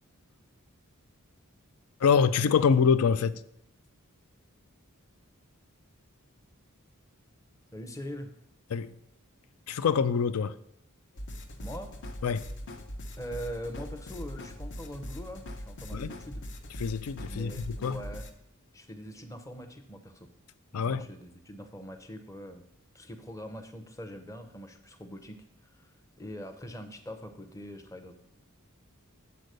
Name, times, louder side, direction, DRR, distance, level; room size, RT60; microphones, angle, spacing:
voice 1, 2.0-3.4 8.7-8.9 9.7-10.6 12.2-12.5 15.9-16.1 16.8-18.0 20.7-21.1, left 6 dB, 80° left, 0.4 m, -25 dB
voice 2, 7.7-8.3 11.6-11.9 13.2-16.4 17.3-18.3 18.7-20.3 20.7-22.6 22.9-28.1, equal, 15° left, 0.7 m, -42 dB
sound 1, 11.2-18.3, equal, 55° left, 0.8 m, -41 dB
7.9 x 4.2 x 6.6 m
head